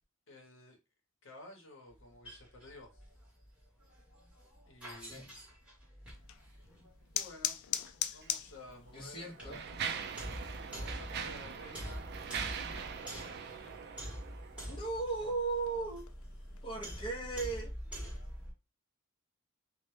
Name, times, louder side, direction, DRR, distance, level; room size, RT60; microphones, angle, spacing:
voice 1, 0.3-0.8 1.2-3.1 4.6-5.3 7.1-7.6 8.1-9.7 10.8-12.1 12.6-13.8, left 1 dB, 60° left, 0.8 m, -53 dB
sound 1, 1.9-18.5, equal, 5° right, 0.9 m, -46 dB
sound 2, 6.1-17.3, left 11 dB, 75° left, 0.3 m, -44 dB
Mechanisms, 8.1-8.3 9.0-14.8, right 7 dB, 50° right, 0.3 m, -42 dB
voice 2, 8.9-9.6 14.7-16.1 16.6-17.7, right 3 dB, 25° left, 0.6 m, -37 dB
2.1 x 2.1 x 3.0 m
head